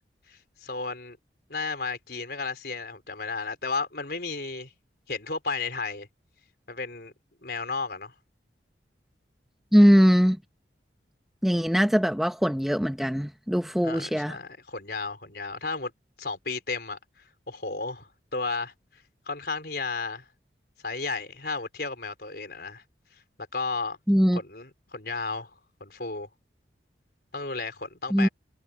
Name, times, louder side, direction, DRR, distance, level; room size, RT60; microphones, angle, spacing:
voice 1, 0.3-1.2 1.5-4.7 5.1-6.1 6.7-7.1 7.4-8.1 13.8-15.9 16.2-17.0 17.5-20.2 20.8-22.8 23.5-24.0 24.3-25.5 25.8-26.3 27.3-28.3, left 4 dB, 60° left, 4.3 m, -33 dB
voice 2, 9.7-10.4 11.4-14.4 24.1-24.4 28.1-28.3, equal, ahead, 0.8 m, -21 dB
head